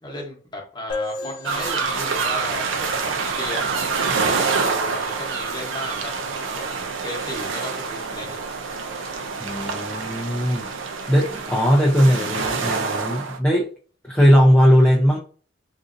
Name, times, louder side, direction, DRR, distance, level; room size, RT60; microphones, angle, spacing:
voice 1, 0.0-3.8 4.1-8.4, left 1 dB, 20° left, 0 dB, 1.0 m, -36 dB
sound 1, 0.9-4.4, left 3 dB, 45° left, 0.7 m, -36 dB
sound 2, 1.4-13.4, right 4 dB, 85° right, 0.6 m, -26 dB
voice 2, 9.4-10.7 11.1-13.7 14.1-15.2, equal, 5° left, -3 dB, 0.4 m, -18 dB
4.0 x 2.5 x 2.5 m, 0.41 s
head